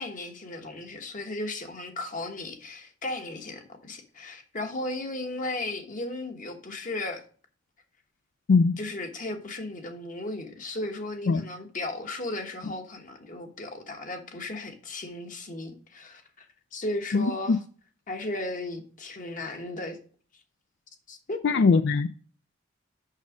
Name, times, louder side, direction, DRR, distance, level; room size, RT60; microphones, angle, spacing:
voice 1, 0.0-7.2 8.8-16.5 16.7-17.6 18.1-20.0 21.1-21.4, left 2 dB, 40° left, 1.2 m, -35 dB
voice 2, 17.1-17.6 21.4-22.1, left 4 dB, 60° left, 0.4 m, -21 dB
6.4 x 6.2 x 5.0 m
head